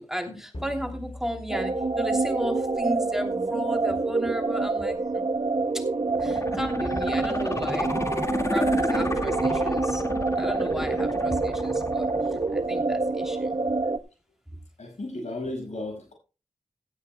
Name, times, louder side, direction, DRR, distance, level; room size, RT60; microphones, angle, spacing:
voice 1, 0.0-5.2 5.7-5.8 6.2-7.9 8.2-12.1 12.5-13.6, equal, 5° right, 2.9 m, -34 dB
sound 1, 0.5-3.2, left 1 dB, 50° left, 5.1 m, -43 dB
sound 2, 1.5-14.0, right 3 dB, 60° right, 1.1 m, -27 dB
sound 3, 6.1-13.1 13.5-13.6, left 1 dB, 25° left, 1.9 m, -31 dB
voice 2, 14.8-16.1, left 2 dB, 85° left, 5.7 m, -34 dB
16.5 x 13.5 x 2.2 m
wide cardioid pair, 50°, 12 cm